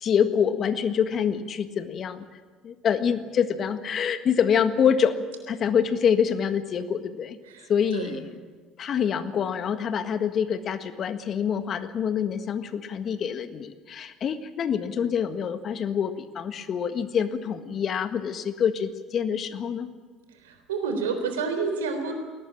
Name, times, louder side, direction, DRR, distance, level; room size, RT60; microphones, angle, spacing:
voice 1, 0.0-2.2 2.6-7.4 7.7-8.3 8.8-19.9, left 7 dB, 50° left, 9 dB, 1.7 m, -26 dB
voice 2, 7.5-8.2 20.3-22.1, right 5 dB, 85° right, 6 dB, 3.8 m, -30 dB
21.0 x 18.5 x 8.8 m, 1.5 s
hypercardioid pair, 65°, 0 cm